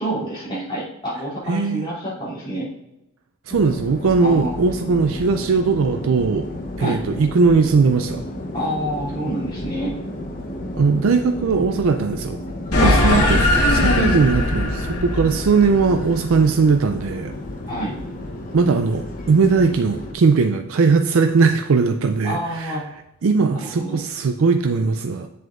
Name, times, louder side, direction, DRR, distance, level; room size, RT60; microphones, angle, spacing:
voice 1, 0.0-2.7 4.2-4.5 6.8-7.0 8.5-9.9 12.8-13.3 17.7-18.0 22.2-22.8 23.5-24.0, equal, 20° left, -8 dB, 2.9 m, -27 dB
voice 2, 1.5-1.9 3.5-6.5 6.8-8.2 10.8-12.4 12.8-17.3 18.5-22.8 23.2-25.3, right 4 dB, 65° right, 6 dB, 0.4 m, -19 dB
sound 1, 3.5-20.1, left 1 dB, 40° left, 0.9 m, -33 dB
sound 2, 12.7-17.5, left 1 dB, 85° left, 1.7 m, -20 dB
7.8 x 7.6 x 2.5 m, 0.86 s
head